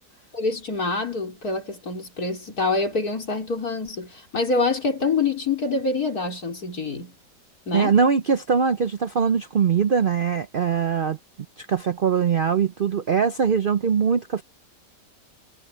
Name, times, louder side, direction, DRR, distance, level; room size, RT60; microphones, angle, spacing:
voice 1, 0.3-7.1 7.7-8.0, left 3 dB, 60° left, 4.8 m, -26 dB
voice 2, 7.7-11.2 11.6-14.4, right 6 dB, 90° right, 0.4 m, -22 dB
omnidirectional pair, 1.8 m